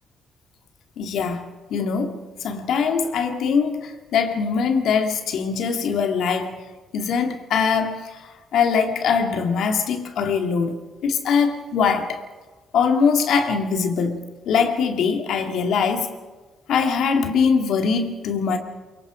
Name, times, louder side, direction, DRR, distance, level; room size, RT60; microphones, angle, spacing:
voice 1, 1.0-6.6 6.9-10.7 11.0-12.2 12.7-16.1 16.7-18.6, left 6 dB, 75° left, 2.3 m, -22 dB
23.5 x 23.0 x 5.0 m
cardioid pair, 90°, 0 cm